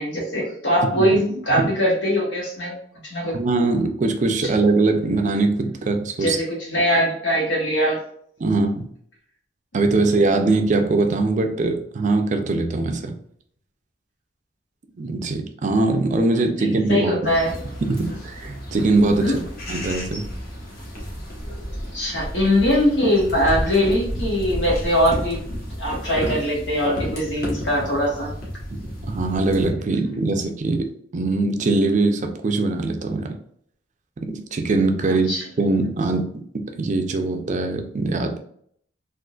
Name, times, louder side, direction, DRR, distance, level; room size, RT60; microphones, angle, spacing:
voice 1, 0.0-3.3 4.4-4.5 6.2-8.0 16.6-17.6 19.2-19.4 21.9-25.5 25.8-28.3 35.1-35.4, equal, 80° left, -3 dB, 1.3 m, -22 dB
voice 2, 3.3-6.4 8.4-8.9 9.7-13.2 15.0-17.1 17.8-19.3 19.7-20.2 29.1-33.3 34.2-35.3 35.6-38.4, right 3 dB, 40° right, 6 dB, 0.4 m, -22 dB
sound 1, 17.2-29.7, equal, 55° left, 1.1 m, -32 dB
3.7 x 2.5 x 2.4 m, 0.65 s
head